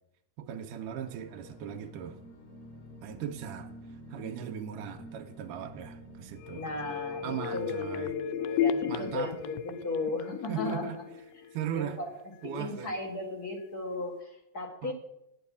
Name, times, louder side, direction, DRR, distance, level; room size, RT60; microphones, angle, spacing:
voice 1, 0.4-2.2 3.0-6.7 7.2-8.2 8.9-9.4 10.5-11.0 11.5-12.0 12.4-12.9 14.8-14.9, right 9 dB, 85° right, 4 dB, 2.2 m, -38 dB
sound 1, 0.6-7.6, equal, 60° left, 4.2 m, -49 dB
sound 2, 6.4-12.1 12.4-12.5, left 8 dB, 80° left, 1.9 m, -34 dB
voice 2, 6.5-10.8 11.7-12.1 12.4-14.9, left 2 dB, 40° left, 1 dB, 1.7 m, -36 dB
9.3 x 7.2 x 8.3 m, 0.83 s
omnidirectional pair, 3.7 m